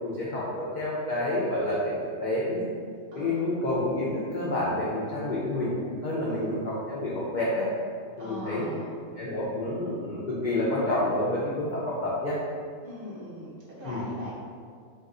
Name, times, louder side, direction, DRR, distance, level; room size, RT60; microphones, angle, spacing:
voice 1, 0.0-1.9 2.2-2.6 3.2-5.7 6.0-7.7 8.2-8.7 9.2-12.4 13.8-14.0, left 1 dB, 80° left, -7 dB, 0.4 m, -28 dB
voice 2, 3.1-3.4 6.2-6.5 8.2-8.9 12.8-14.3, equal, 55° right, -7 dB, 0.7 m, -40 dB
2.4 x 2.3 x 3.6 m, 2.1 s
omnidirectional pair, 1.4 m